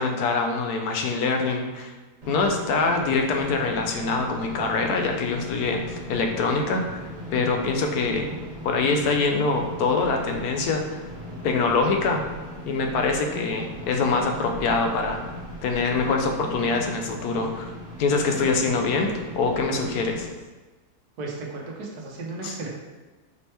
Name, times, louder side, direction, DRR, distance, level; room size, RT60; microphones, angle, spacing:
voice 1, 0.0-1.9 2.3-8.3 8.6-11.0 11.4-12.2 12.7-15.2 15.6-17.7 18.0-19.1 19.3-20.3 22.4-22.5, left 4 dB, 80° left, 3 dB, 1.2 m, -24 dB
sound 1, 2.2-20.3, equal, 55° right, 1.8 m, -38 dB
voice 2, 21.2-22.7, right 3 dB, 80° right, -1 dB, 1.4 m, -34 dB
5.3 x 3.2 x 3.0 m, 1.2 s
omnidirectional pair, 1.7 m